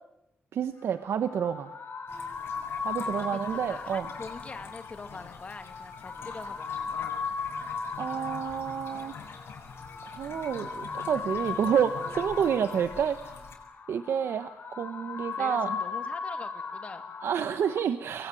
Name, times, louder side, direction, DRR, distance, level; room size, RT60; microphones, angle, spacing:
voice 1, 0.5-1.7 2.8-4.1 8.0-9.1 10.0-13.3 13.9-15.8 17.2-18.3, right 8 dB, 75° right, 11 dB, 1.1 m, -29 dB
sound 1, 0.8-17.8, left 5 dB, 50° left, 4.2 m, -37 dB
sound 2, 2.1-13.6, left 5 dB, 70° left, 6.9 m, -46 dB
voice 2, 3.1-7.1 15.4-17.0, left 4 dB, 30° left, 8 dB, 2.3 m, -43 dB
27.0 x 22.0 x 9.2 m, 0.83 s
wide cardioid pair, 180°, 4 cm